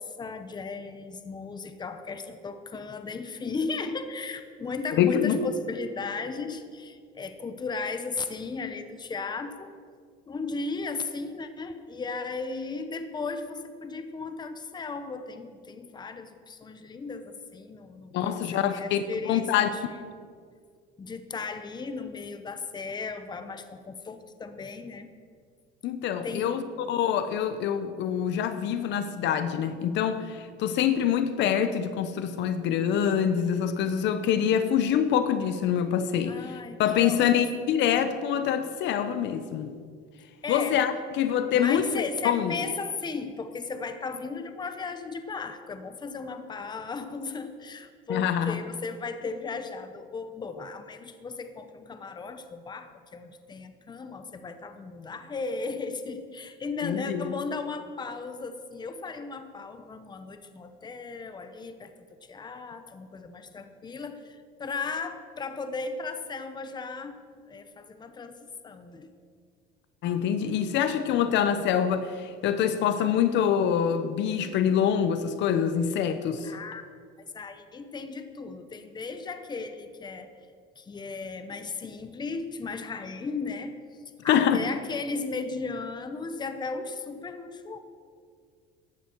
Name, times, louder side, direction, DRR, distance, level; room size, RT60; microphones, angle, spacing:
voice 1, 0.0-9.7 10.3-19.8 21.0-25.1 26.2-26.6 36.3-37.3 40.4-40.8 41.5-69.1 76.4-76.8 77.3-80.3 80.8-83.8 84.2-87.8, left 4 dB, 20° left, 9 dB, 1.0 m, -36 dB
voice 2, 5.0-5.5 18.1-19.7 25.8-26.6 26.9-39.7 40.5-42.5 48.1-48.6 56.8-57.3 70.0-76.5 84.3-84.6, left 8 dB, 60° left, 10 dB, 0.9 m, -25 dB
15.5 x 11.5 x 4.7 m, 2.1 s
cardioid pair, 125°, 21 cm